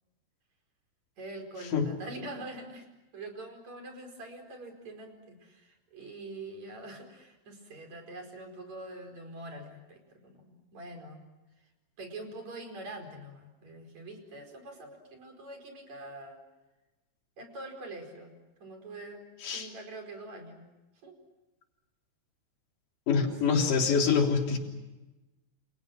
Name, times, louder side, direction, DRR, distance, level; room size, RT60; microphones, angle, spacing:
voice 1, 1.2-2.9 3.1-11.3 12.0-16.4 17.4-18.3 18.6-20.6 21.0-21.2 23.2-23.3 24.0-24.2, right 2 dB, 40° right, 4 dB, 5.8 m, -44 dB
voice 2, 23.1-24.6, left 5 dB, 50° left, 2 dB, 4.6 m, -25 dB
29.5 x 29.0 x 6.3 m, 1.1 s
omnidirectional pair, 5.2 m